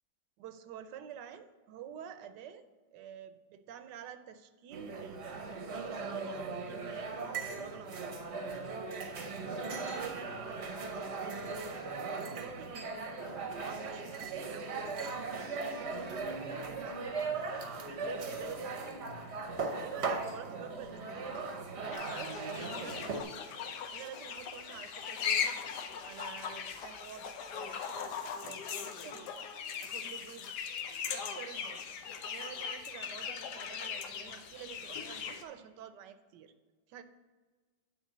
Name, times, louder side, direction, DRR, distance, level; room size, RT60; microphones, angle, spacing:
voice 1, 0.4-8.2 9.9-10.7 11.0-11.6 12.2-19.0 19.8-23.5 23.9-25.6 26.0-29.3 29.8-30.5 31.1-32.0 32.3-36.5 36.9-37.0, right 9 dB, 75° right, 11 dB, 1.2 m, -49 dB
sound 1, 4.7-23.2, right 3 dB, 50° right, 0.9 m, -38 dB
sound 2, 21.9-35.4, left 7 dB, 65° left, 1.3 m, -39 dB
9.8 x 3.9 x 7.1 m, 1.4 s
omnidirectional pair, 2.0 m